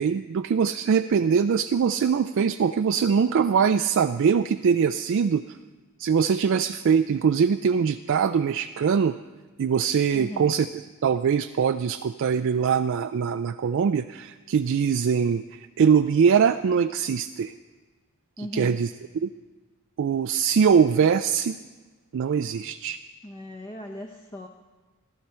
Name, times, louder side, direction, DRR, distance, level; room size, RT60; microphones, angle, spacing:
voice 1, 0.0-5.5 6.0-9.2 9.6-10.7 11.0-17.5 18.4-18.9 19.2-19.3 20.0-21.6 22.1-23.0, right 6 dB, 60° right, 9 dB, 0.3 m, -22 dB
voice 2, 10.1-10.5 18.4-18.8 23.2-24.5, left 1 dB, 20° left, 3 dB, 0.8 m, -38 dB
15.0 x 13.5 x 4.4 m, 1.3 s
head